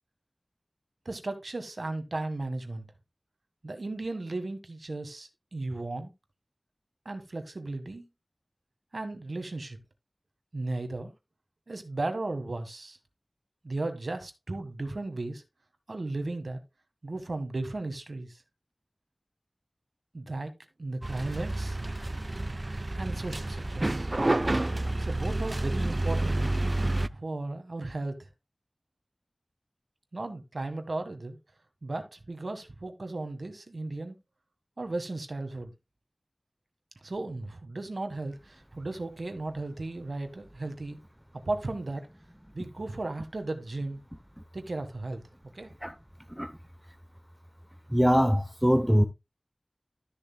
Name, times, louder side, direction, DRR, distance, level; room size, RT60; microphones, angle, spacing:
voice 1, 1.0-2.8 3.6-6.1 7.0-8.0 8.9-9.8 10.5-11.1 11.7-13.0 13.6-15.4 15.9-16.6 17.0-18.4 20.1-20.5 20.8-21.8 23.0-24.1 25.0-26.5 27.1-28.2 30.1-31.4 31.8-34.2 34.8-35.7 37.0-41.0 41.3-42.1 42.5-44.0 44.5-45.3 45.5-45.7, right 2 dB, 85° right, 1.5 m, -35 dB
sound 1, 21.0-27.1, right 2 dB, 45° right, 0.4 m, -29 dB
voice 2, 47.9-49.0, equal, 5° right, 0.7 m, -23 dB
13.0 x 6.9 x 2.2 m
wide cardioid pair, 55°, 0 cm